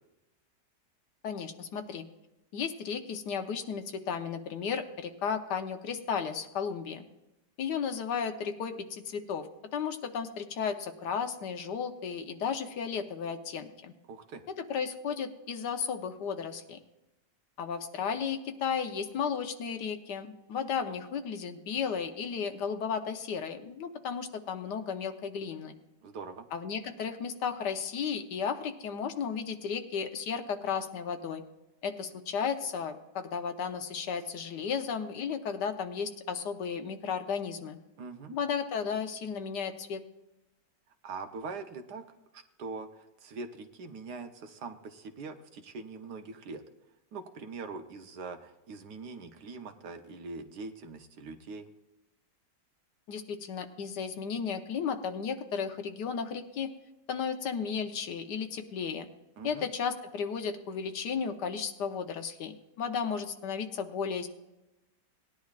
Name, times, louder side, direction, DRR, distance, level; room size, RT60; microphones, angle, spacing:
voice 1, 1.2-2.1 2.5-7.0 7.6-9.5 9.7-13.9 14.7-16.8 17.6-25.7 26.5-31.4 31.8-37.8 38.3-40.0 53.1-56.7 57.1-59.1 59.4-64.3, left 6 dB, 70° left, 7 dB, 1.4 m, -34 dB
voice 2, 14.1-14.4 26.0-26.4 38.0-38.4 41.0-42.0 42.3-46.6 47.1-51.7 59.4-59.7, right 4 dB, 65° right, 6 dB, 1.4 m, -42 dB
18.5 x 10.5 x 2.4 m, 0.98 s
omnidirectional pair, 2.0 m